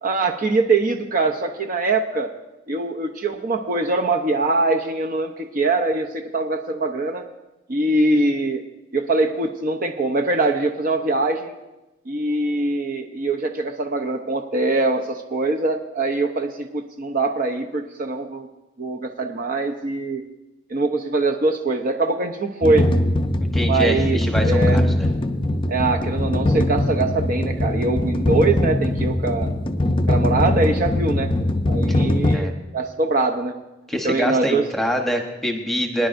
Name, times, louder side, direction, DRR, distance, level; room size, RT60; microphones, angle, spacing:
voice 1, 0.0-2.3 2.7-7.3 7.7-8.6 8.9-11.5 12.1-18.5 18.8-20.2 20.7-22.9 23.7-24.8 25.7-29.5 30.1-31.3 31.6-33.5 34.0-34.6, right 2 dB, 45° right, 4 dB, 0.7 m, -23 dB
sound 1, 22.6-32.4, left 1 dB, 25° left, 0.5 m, -21 dB
voice 2, 23.5-25.1 32.3-32.5 33.9-36.1, equal, ahead, 2 dB, 1.0 m, -25 dB
22.0 x 10.5 x 2.6 m, 1.0 s
head